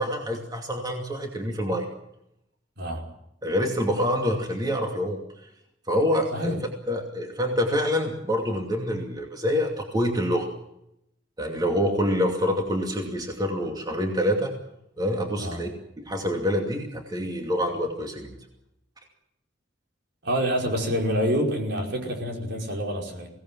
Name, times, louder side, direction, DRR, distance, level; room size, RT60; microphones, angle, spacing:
voice 1, 0.0-1.9 3.4-5.2 5.9-6.6 6.9-10.5 11.4-14.5 15.0-15.7 16.0-18.3, equal, 20° right, 2 dB, 2.6 m, -26 dB
voice 2, 20.2-23.3, equal, 65° right, 2 dB, 5.2 m, -27 dB
23.0 x 18.0 x 7.6 m, 0.80 s
head